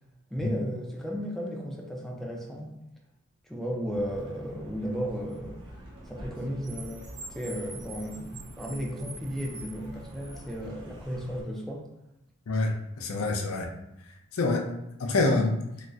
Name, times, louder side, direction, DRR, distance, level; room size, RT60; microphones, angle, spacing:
voice 1, 0.3-2.7 3.5-5.6 6.1-11.9, equal, ahead, -2 dB, 0.4 m, -34 dB
Car, 3.9-11.4, right 1 dB, 80° right, 0.8 m, -45 dB
voice 2, 12.5-13.7 14.3-14.7 15.0-15.6, left 2 dB, 75° left, 2 dB, 0.5 m, -26 dB
3.8 x 2.0 x 2.3 m, 0.88 s
head